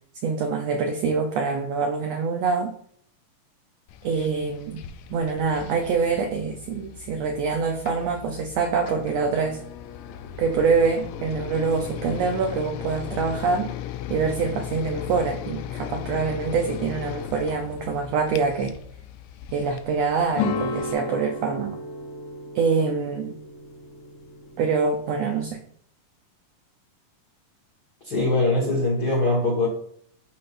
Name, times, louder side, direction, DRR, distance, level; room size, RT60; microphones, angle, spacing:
voice 1, 0.2-2.7 4.0-4.8 5.1-9.6 10.4-13.7 14.1-18.8 19.5-21.8 22.5-23.4 24.6-25.6, right 5 dB, 80° right, 3 dB, 1.5 m, -25 dB
sound 1, 3.9-20.9, left 10 dB, 90° left, 1.5 m, -37 dB
sound 2, 20.3-25.5, left 3 dB, 70° left, 1.6 m, -33 dB
voice 2, 28.0-29.7, left 2 dB, 45° left, -4 dB, 1.5 m, -22 dB
11.0 x 4.2 x 2.5 m, 0.63 s
omnidirectional pair, 3.7 m